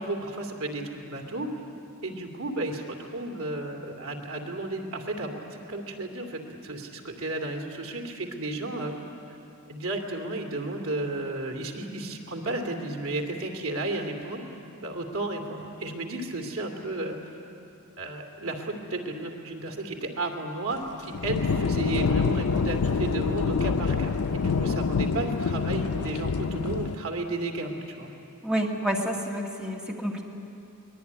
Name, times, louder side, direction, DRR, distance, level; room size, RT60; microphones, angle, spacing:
voice 1, 0.0-1.5 2.0-8.9 9.7-14.4 14.8-17.2 18.0-28.1, right 2 dB, 75° right, 3 dB, 2.7 m, -33 dB
sound 1, 21.1-27.0, left 5 dB, 75° left, 0.6 m, -26 dB
voice 2, 28.4-30.2, equal, 5° right, 0 dB, 1.8 m, -29 dB
23.0 x 20.5 x 9.6 m, 2.9 s
head